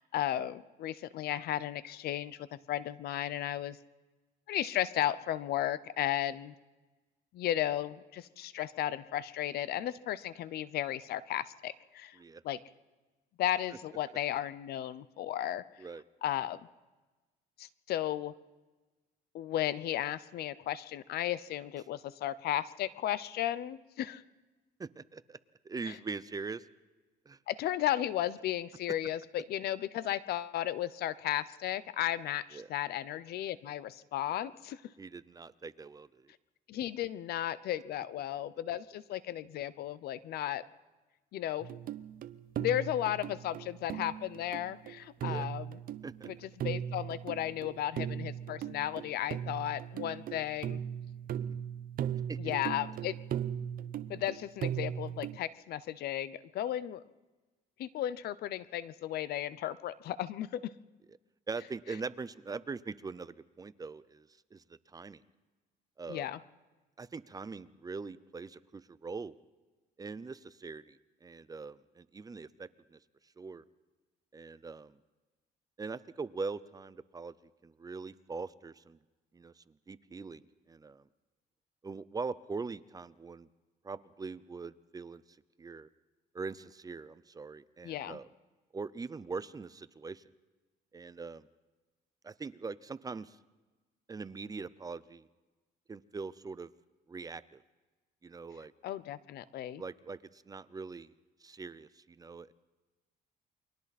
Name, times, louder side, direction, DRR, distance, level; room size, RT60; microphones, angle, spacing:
voice 1, 0.0-2.4 2.7-3.8 4.5-6.5 7.3-12.2 12.4-12.6 13.4-15.6 16.2-16.6 17.6-18.3 19.3-24.2 25.8-26.0 27.5-34.8 36.7-40.6 41.3-41.7 42.6-45.8 46.3-50.8 52.4-53.1 54.1-57.0 57.8-60.6 66.1-66.4 87.8-88.2 98.8-99.8, left 12 dB, 70° left, 17 dB, 0.8 m, -34 dB
voice 2, 24.8-25.4 25.6-26.6 27.3-27.4 32.5-32.7 35.0-36.3 45.2-45.5 46.0-46.3 51.4-51.5 52.3-52.4 61.5-64.6 64.9-65.2 66.0-66.3 67.0-69.3 70.0-73.0 73.4-73.6 74.3-74.9 75.8-77.3 77.6-79.0 79.3-80.4 80.7-81.0 81.8-83.5 83.8-85.2 85.6-85.9 86.3-88.3 88.7-90.2 90.9-91.4 92.2-93.4 94.1-95.3 95.9-96.7 97.1-97.6 98.2-98.7 99.8-101.1 101.4-102.5, right 4 dB, 20° right, 16 dB, 0.7 m, -42 dB
sound 1, 41.6-55.4, right 9 dB, 55° right, 0.8 m, -38 dB
29.0 x 23.0 x 4.2 m, 1.2 s
cardioid pair, 110°, 17 cm